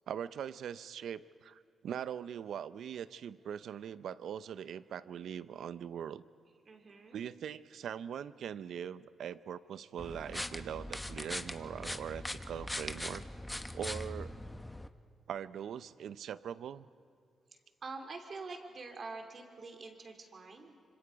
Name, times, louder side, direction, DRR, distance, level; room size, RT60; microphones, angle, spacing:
voice 1, 0.1-6.2 7.1-13.2 13.7-14.3 15.3-16.9, right 9 dB, 75° right, 15 dB, 0.6 m, -41 dB
voice 2, 6.6-7.2 17.8-20.8, right 3 dB, 50° right, 4 dB, 3.0 m, -46 dB
sound 1, 10.0-14.9, left 1 dB, 10° left, 1.0 m, -41 dB
26.5 x 25.0 x 5.2 m, 2.4 s
cardioid pair, 80°, 0 cm